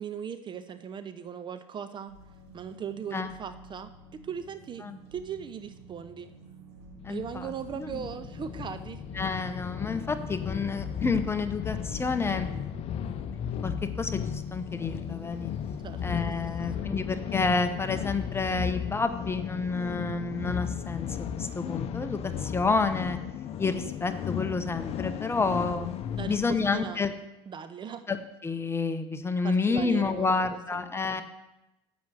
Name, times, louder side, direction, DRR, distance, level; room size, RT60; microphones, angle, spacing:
voice 1, 0.0-2.1 2.5-3.9 4.2-4.9 5.1-6.3 7.1-9.0 15.8-16.0 16.8-16.9 26.2-27.0 27.5-28.0 29.4-30.9, right 7 dB, 35° right, 10 dB, 0.6 m, -38 dB
sound 1, 2.1-18.8, right 3 dB, 85° right, 2.3 m, -51 dB
sound 2, 7.0-26.5, left 8 dB, 45° left, 0.7 m, -35 dB
voice 2, 7.0-8.1 9.1-12.5 13.6-15.5 16.0-23.2 23.6-25.9 26.3-27.1 28.1-31.2, left 4 dB, 15° left, 9 dB, 0.9 m, -29 dB
7.2 x 6.1 x 7.8 m, 0.93 s
hypercardioid pair, 75°, 14 cm